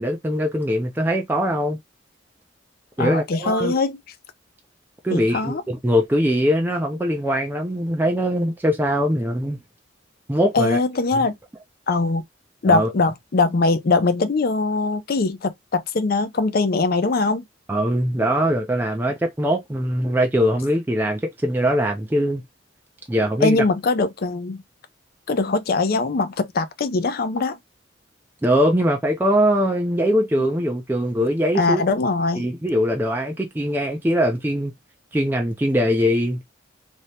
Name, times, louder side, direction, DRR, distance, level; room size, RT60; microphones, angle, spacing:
voice 1, 0.0-1.8 3.0-3.8 5.0-9.6 10.3-10.8 11.2-11.3 12.6-12.9 17.7-22.4 23.1-23.6 28.4-31.8 32.4-34.7 35.1-36.4, equal, 10° right, 0.4 m, -21 dB
voice 2, 3.0-4.0 5.1-5.6 10.5-11.3 11.9-12.2 12.6-17.4 23.4-24.6 25.3-27.6 30.4-30.5 31.5-32.5, left 3 dB, 50° left, 0.5 m, -21 dB
2.8 x 2.7 x 3.2 m
head